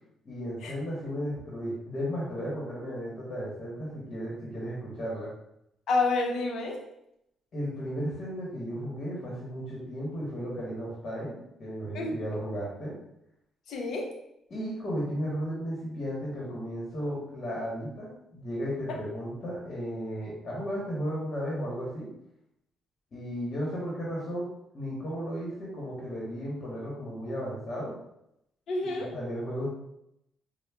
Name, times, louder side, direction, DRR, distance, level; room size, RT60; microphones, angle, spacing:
voice 1, 0.2-5.3 7.5-13.0 14.5-22.1 23.1-24.5 24.7-27.9 28.8-29.7, equal, 50° left, -5 dB, 1.0 m, -34 dB
voice 2, 5.9-6.8 11.9-12.1 13.7-14.1 28.7-29.1, left 3 dB, 70° left, 1 dB, 0.7 m, -28 dB
4.9 x 2.1 x 2.2 m, 0.81 s
cardioid pair, 90°, 0 cm